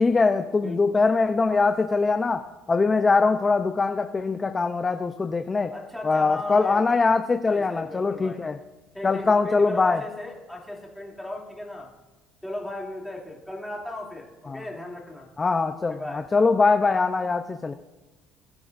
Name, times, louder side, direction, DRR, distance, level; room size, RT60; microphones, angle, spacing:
voice 1, 0.0-5.7 6.0-8.6 9.0-10.0 14.5-14.6 15.4-17.7, left 4 dB, 20° left, 8 dB, 0.6 m, -22 dB
voice 2, 5.7-6.9 7.5-8.4 8.9-11.9 12.4-15.3 15.9-16.3, left 1 dB, ahead, -2 dB, 2.8 m, -36 dB
21.5 x 12.0 x 2.6 m, 1.2 s
cardioid pair, 150°, 0 cm